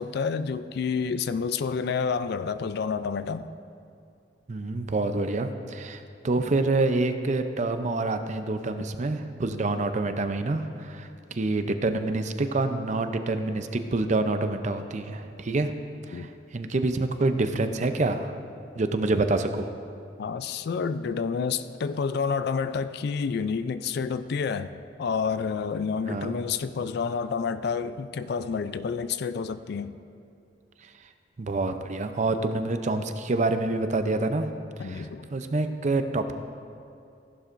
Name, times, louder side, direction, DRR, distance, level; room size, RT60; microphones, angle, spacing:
voice 1, 0.0-3.5 16.1-16.3 20.2-29.9 34.8-35.3, left 5 dB, 60° left, 13 dB, 0.4 m, -29 dB
voice 2, 4.5-15.7 16.1-16.3 16.5-18.3 18.8-19.7 26.1-26.4 31.4-34.5 34.8-35.1 35.3-36.3, right 2 dB, 40° right, 8 dB, 0.5 m, -27 dB
15.0 x 11.0 x 2.6 m, 2.5 s
head